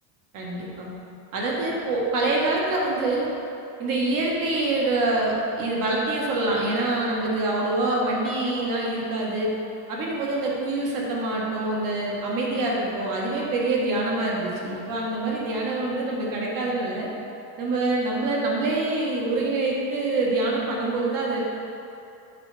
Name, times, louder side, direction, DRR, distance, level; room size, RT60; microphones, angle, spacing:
voice 1, 0.3-0.9 1.3-3.3 3.8-9.5 9.9-17.1 17.6-21.4, right 2 dB, 45° right, -3 dB, 1.3 m, -25 dB
7.4 x 4.9 x 3.3 m, 2.8 s
cardioid pair, 150°, 47 cm